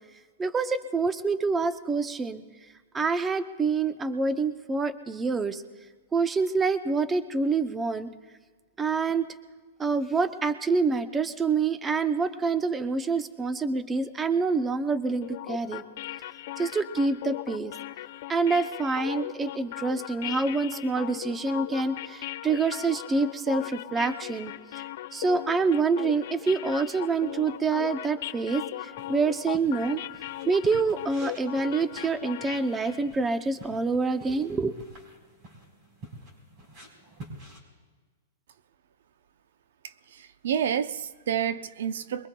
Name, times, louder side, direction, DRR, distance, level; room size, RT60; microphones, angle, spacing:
voice 1, 0.4-2.4 2.9-5.6 6.1-8.1 8.8-9.3 9.8-15.8 16.6-17.7 18.3-24.8 25.1-30.0 30.5-34.8, right 4 dB, 15° right, 11 dB, 0.6 m, -27 dB
sound 1, 15.2-33.1, left 13 dB, 55° left, 0.5 m, -38 dB
sound 2, 29.0-37.6, right 1 dB, 35° right, 4.1 m, -49 dB
voice 2, 40.2-42.3, right 8 dB, 70° right, 14 dB, 0.5 m, -29 dB
23.5 x 22.0 x 2.3 m, 1.4 s
hypercardioid pair, 145°, 0 cm